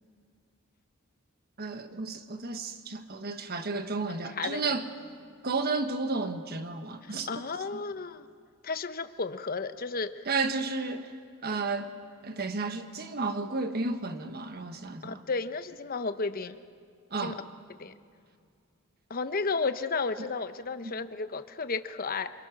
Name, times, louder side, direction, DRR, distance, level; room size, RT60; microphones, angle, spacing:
voice 1, 1.6-4.9 5.4-7.4 10.3-11.1 11.4-12.0 12.2-15.2 17.1-17.4 20.8-20.9, right 3 dB, 50° right, 1.4 m, -32 dB
voice 2, 4.1-4.6 7.0-8.3 8.6-10.1 15.0-16.6 17.2-17.4 17.8-17.9 19.1-22.3, left 4 dB, 45° left, 0.8 m, -33 dB
29.0 x 22.0 x 6.0 m
head